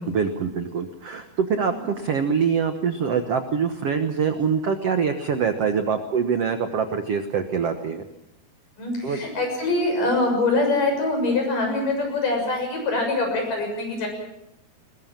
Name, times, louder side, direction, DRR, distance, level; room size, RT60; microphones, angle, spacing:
voice 1, 0.0-8.1 9.0-9.2, right 6 dB, 65° right, 7 dB, 1.5 m, -24 dB
voice 2, 8.8-14.1, left 2 dB, 55° left, 2 dB, 8.4 m, -24 dB
21.5 x 21.5 x 7.4 m, 0.84 s
omnidirectional pair, 4.5 m